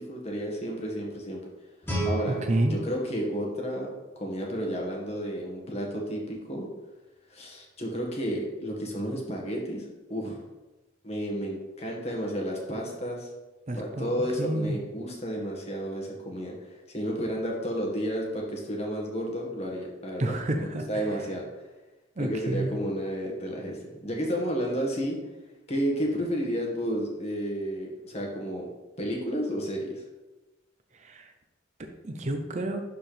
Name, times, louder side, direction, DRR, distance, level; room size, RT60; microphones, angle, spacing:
voice 1, 0.0-1.4 2.0-2.4 2.7-3.9 4.1-6.7 7.3-10.4 11.0-13.3 13.7-16.5 16.9-21.5 22.2-25.2 25.7-28.7 29.0-30.0, equal, 35° left, -1 dB, 1.7 m, -31 dB
Guitar, 1.8-4.6, right 2 dB, 10° left, 2.4 m, -34 dB
voice 2, 2.3-2.7 13.7-14.1 14.4-14.8 20.2-21.2 22.2-22.8 30.9-31.3 32.0-32.8, right 1 dB, 40° right, 5 dB, 0.6 m, -29 dB
11.5 x 4.6 x 3.4 m, 1.1 s
head